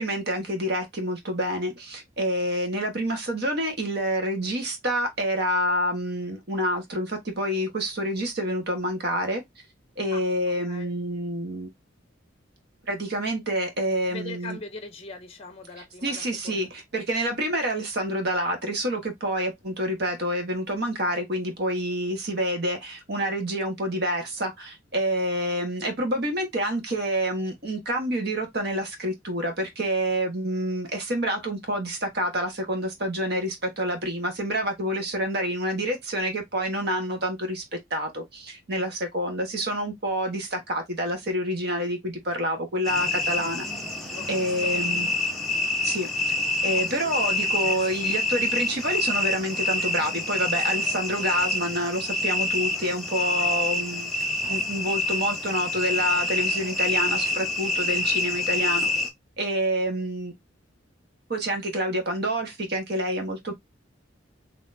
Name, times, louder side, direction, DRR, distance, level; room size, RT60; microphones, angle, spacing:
voice 1, 0.0-9.4 10.0-11.7 12.9-14.6 16.0-43.6 44.3-45.1 45.8-46.1 46.6-54.1 54.4-58.9 59.4-60.3 61.3-63.5, equal, 55° right, 1.2 m, -28 dB
voice 2, 10.1-10.9 14.1-16.7 44.1-44.7, left 3 dB, 30° left, 0.8 m, -41 dB
sound 1, 42.8-59.1, left 2 dB, ahead, 0.9 m, -27 dB
4.0 x 2.8 x 2.6 m
head